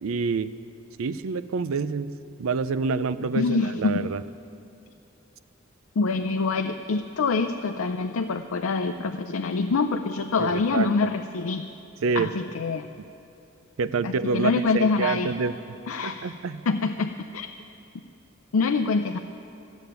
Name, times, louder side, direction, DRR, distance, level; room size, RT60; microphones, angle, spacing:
voice 1, 0.0-0.5 1.0-4.2 10.4-10.9 12.0-12.3 13.8-15.8 16.0-16.7, right 4 dB, 75° right, 14 dB, 0.5 m, -27 dB
voice 2, 3.3-4.1 6.0-11.6 12.2-12.9 14.0-15.3 15.9-16.3 16.7-17.5 18.5-19.2, left 4 dB, 85° left, 6 dB, 0.5 m, -25 dB
14.5 x 7.1 x 9.3 m, 2.7 s
head